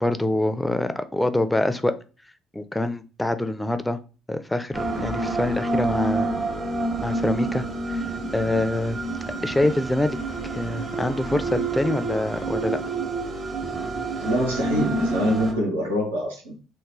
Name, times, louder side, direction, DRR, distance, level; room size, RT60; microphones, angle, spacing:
voice 1, 0.0-1.9 2.5-4.0 4.3-6.3 7.0-8.0 8.3-9.0 9.4-10.2 10.5-12.8, left 1 dB, 10° left, 10 dB, 0.5 m, -25 dB
sound 1, 4.7-15.5, right 2 dB, 40° right, 0.9 m, -28 dB
voice 2, 14.2-16.5, equal, 85° right, -2 dB, 0.8 m, -25 dB
3.0 x 2.3 x 3.6 m, 0.35 s
figure-of-eight pair, 50°, 0 cm